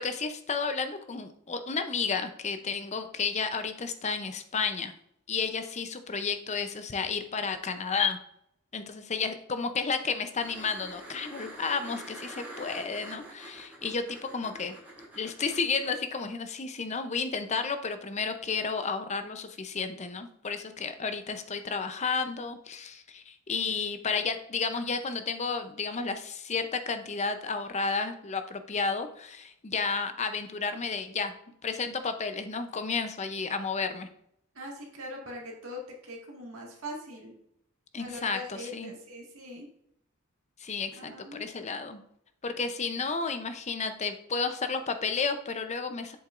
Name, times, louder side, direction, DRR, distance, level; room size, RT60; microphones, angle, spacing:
voice 1, 0.0-4.9 5.3-8.2 8.7-14.8 15.1-31.3 31.6-34.1 37.9-38.9 40.6-42.0 42.4-46.2, left 5 dB, 30° left, 9 dB, 0.6 m, -32 dB
sound 1, 10.4-15.9 18.6-18.7, right 1 dB, 10° right, 3.0 m, -46 dB
voice 2, 34.6-37.3 38.0-39.7 41.0-41.4, left 1 dB, 65° right, -1 dB, 1.9 m, -41 dB
7.8 x 6.7 x 2.5 m, 0.74 s
head